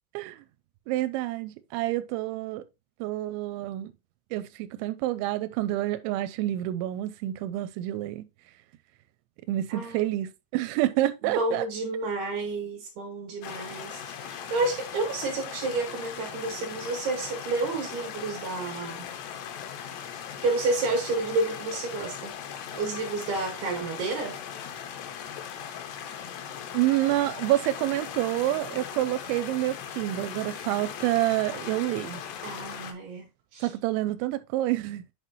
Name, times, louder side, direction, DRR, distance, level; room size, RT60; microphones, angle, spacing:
voice 1, 0.9-2.6 3.0-3.9 4.3-8.3 9.5-11.7 26.7-32.2 33.6-35.0, right 15 dB, 90° right, 2.9 m, -28 dB
voice 2, 9.7-10.1 11.2-19.0 20.4-22.4 22.7-24.4 32.4-33.3 33.5-33.7, right 3 dB, 65° right, 3.5 m, -30 dB
sound 1, 13.4-32.9, left 8 dB, 75° left, 3.1 m, -39 dB
9.2 x 5.6 x 3.0 m
omnidirectional pair, 5.2 m